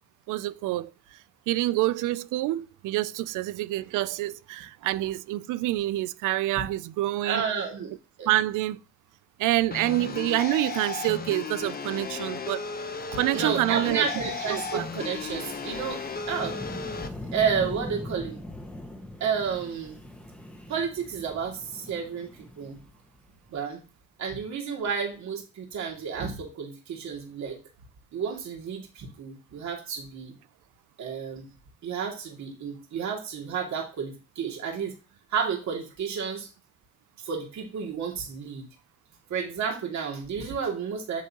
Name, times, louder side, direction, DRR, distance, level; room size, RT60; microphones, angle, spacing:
voice 1, 0.3-0.9 1.5-7.4 8.3-8.8 9.4-12.6 13.1-14.0 14.5-14.9, right 16 dB, 90° right, 0.5 m, -27 dB
voice 2, 7.2-7.9 8.2-8.3 13.3-16.0 16.3-16.6 17.3-18.4 19.2-20.0 20.7-22.8 23.5-23.8 24.2-27.6 28.1-30.3 31.0-31.5 31.8-34.9 35.3-36.5 37.2-38.7 39.3-41.2, right 6 dB, 65° right, 2.5 m, -31 dB
sound 1, 9.7-17.1, left 5 dB, 30° left, 1.0 m, -35 dB
Wind, 13.2-23.5, left 1 dB, 5° left, 1.5 m, -42 dB
8.4 x 7.0 x 2.9 m
cardioid pair, 90°, 30 cm